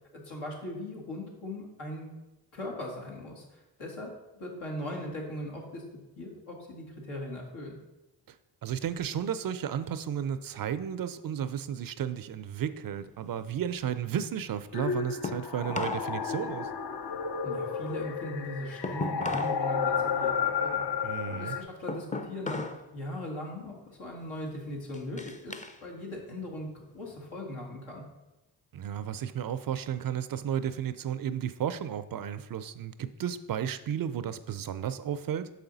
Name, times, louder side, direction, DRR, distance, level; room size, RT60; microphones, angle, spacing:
voice 1, 0.1-2.1 2.5-5.8 6.2-7.8 17.4-20.8 21.3-22.6 22.9-25.5 25.8-28.0, left 1 dB, 80° left, -2 dB, 1.8 m, -39 dB
voice 2, 8.6-16.7 21.0-21.6 28.7-35.5, right 9 dB, 45° right, 12 dB, 0.4 m, -33 dB
sound 1, 13.0-16.1 16.4-19.6 20.0-22.9 23.2-23.6 24.2-25.8 26.2-27.3, left 2 dB, 15° left, 0.5 m, -39 dB
sound 2, 14.7-21.6, left 6 dB, 50° left, 0.7 m, -32 dB
6.7 x 4.9 x 3.9 m, 1.0 s
supercardioid pair, 50°, 49 cm